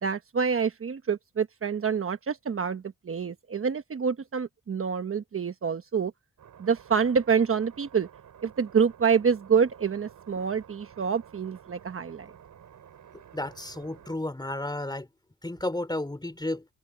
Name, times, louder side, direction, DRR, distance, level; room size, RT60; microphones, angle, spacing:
voice 1, 0.0-6.1 6.6-8.1 8.4-12.3, right 6 dB, 50° right, 1.2 m, -27 dB
sound 1, 6.4-14.2, right 9 dB, 90° right, 6.8 m, -52 dB
voice 2, 13.1-15.1 15.4-16.7, left 1 dB, 15° left, 3.4 m, -33 dB
cardioid pair, 75°, 29 cm